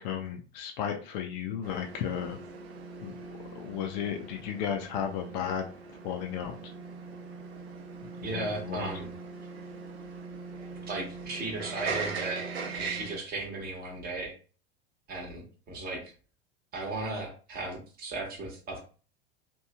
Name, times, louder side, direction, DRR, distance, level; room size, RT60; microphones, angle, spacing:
voice 1, 0.0-2.4 3.0-3.2 3.5-5.7 6.0-6.7 8.0-8.9, left 8 dB, 45° left, 3 dB, 0.5 m, -34 dB
sound 1, 1.6-13.2, right 4 dB, 70° right, 0.7 m, -40 dB
voice 2, 8.2-9.1 10.9-12.4 12.7-14.3 15.1-16.0 16.7-18.8, right 2 dB, 30° right, 1 dB, 1.0 m, -36 dB
2.9 x 2.6 x 2.2 m, 0.38 s
figure-of-eight pair, 80°, 33 cm